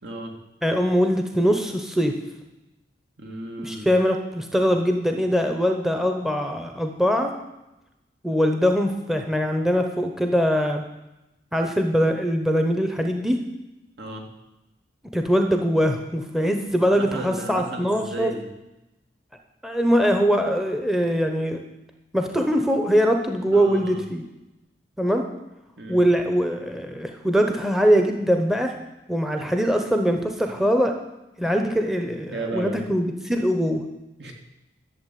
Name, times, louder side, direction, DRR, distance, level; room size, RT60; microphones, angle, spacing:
voice 1, 0.0-0.3 3.2-3.9 14.0-14.3 16.8-18.5 23.5-24.0 25.8-26.0 32.3-32.9 34.2-34.3, right 2 dB, 65° right, 2 dB, 2.5 m, -34 dB
voice 2, 0.6-2.1 3.6-7.3 8.2-10.8 11.5-13.4 15.1-18.3 19.6-21.6 22.1-24.2 25.0-25.3 25.9-28.8 29.1-31.0 31.4-33.8, equal, ahead, 4 dB, 0.9 m, -22 dB
12.5 x 7.3 x 9.3 m, 0.96 s
head